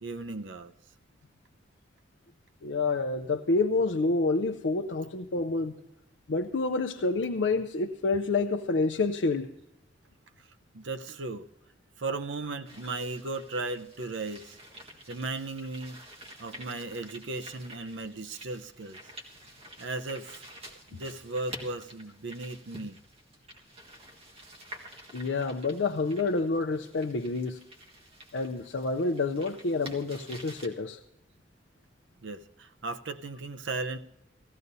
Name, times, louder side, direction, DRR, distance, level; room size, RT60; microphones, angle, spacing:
voice 1, 0.0-0.7 10.4-10.5 10.7-11.5 12.0-16.0 16.4-19.0 19.8-20.4 20.9-23.0 32.2-34.0, right 3 dB, 85° right, 9 dB, 0.7 m, -36 dB
voice 2, 2.6-5.7 6.3-9.5 25.1-27.7 28.3-31.0, left 3 dB, 80° left, 4 dB, 0.6 m, -28 dB
sound 1, 12.6-30.7, right 1 dB, 35° right, 1.6 m, -49 dB
17.5 x 15.0 x 2.7 m, 0.89 s
head